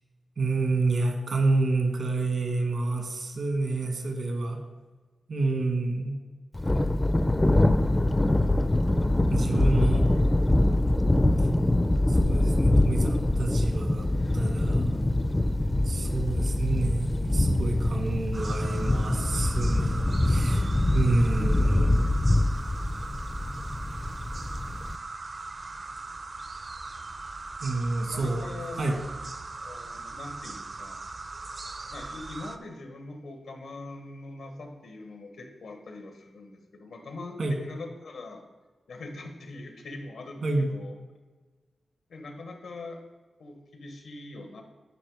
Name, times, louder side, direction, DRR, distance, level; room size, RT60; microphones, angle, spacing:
voice 1, 0.4-4.6 5.3-6.2 9.3-10.1 12.1-15.0 15.8-20.6 20.9-22.1 27.6-29.0 37.4-37.6 40.4-40.7, right 3 dB, 65° right, 2 dB, 1.5 m, -29 dB
Thunder, 6.5-25.0, left 1 dB, 20° left, 0.4 m, -24 dB
sound 1, 18.3-32.6, right 3 dB, 40° right, 0.6 m, -39 dB
voice 2, 27.9-28.8 29.6-31.1 31.9-38.4 38.9-40.9 42.1-43.0 43.4-44.6, left 2 dB, 85° left, 4 dB, 1.3 m, -42 dB
9.9 x 4.9 x 4.8 m, 1.3 s
wide cardioid pair, 90°, 0 cm